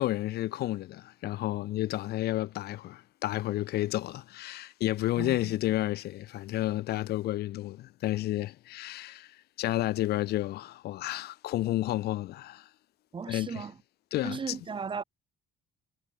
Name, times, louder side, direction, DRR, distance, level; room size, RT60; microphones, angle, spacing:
voice 1, 0.0-12.7 13.3-13.7 14.1-14.6, left 15 dB, 70° left, 1.0 m, -31 dB
voice 2, 5.2-5.5 13.1-13.7 14.2-15.0, right 5 dB, 30° right, 1.8 m, -36 dB
cardioid pair, 110°, 17 cm